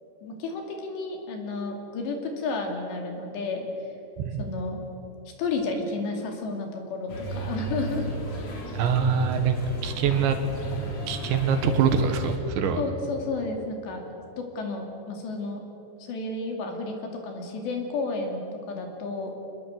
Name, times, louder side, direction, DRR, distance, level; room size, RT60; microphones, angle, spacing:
voice 1, 0.2-3.7 4.4-4.8 5.4-8.1 12.8-14.0 14.4-15.6 16.0-16.9 17.2-18.4 18.7-19.4, left 3 dB, 65° left, 3 dB, 4.7 m, -31 dB
sound 1, 7.1-12.4, right 1 dB, 40° left, 3.6 m, -33 dB
voice 2, 8.7-9.6 9.8-10.4 11.1-12.8, right 6 dB, 75° right, 7 dB, 3.6 m, -24 dB
26.5 x 20.0 x 8.0 m, 2.9 s
omnidirectional pair, 5.5 m